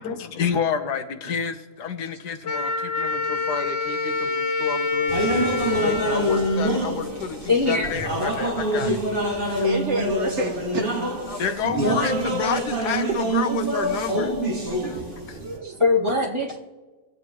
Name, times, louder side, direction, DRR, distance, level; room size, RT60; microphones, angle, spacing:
voice 1, 0.0-8.9 9.2-9.7 11.3-14.4 14.8-15.4, left 7 dB, 85° left, 8 dB, 1.5 m, -30 dB
Wind instrument woodwind instrument, 2.4-7.2, left 3 dB, 55° left, 0.7 m, -27 dB
sound 1, 5.1-15.6, right 1 dB, 35° right, 2.4 m, -25 dB
voice 2, 7.5-7.9 12.1-12.2 15.6-16.6, left 3 dB, 20° right, -5 dB, 1.9 m, -22 dB
voice 3, 9.6-11.7 13.1-13.2 14.7-14.9 15.4-16.1, right 3 dB, 55° right, 4 dB, 0.9 m, -31 dB
25.0 x 8.3 x 3.0 m, 1.3 s
omnidirectional pair, 1.7 m